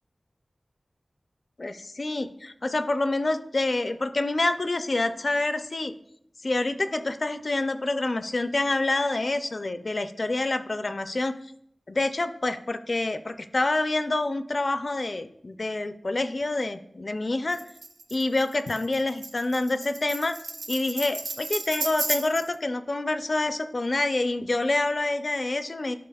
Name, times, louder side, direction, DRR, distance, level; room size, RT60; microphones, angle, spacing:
voice 1, 1.6-5.9 6.4-11.3 11.9-17.6 18.1-20.4 20.7-25.9, left 2 dB, 55° left, 9 dB, 0.4 m, -27 dB
Tambourine, 17.5-22.5, right 2 dB, 75° right, 0.5 m, -34 dB
11.5 x 4.8 x 2.3 m, 0.75 s
wide cardioid pair, 50°, 0 cm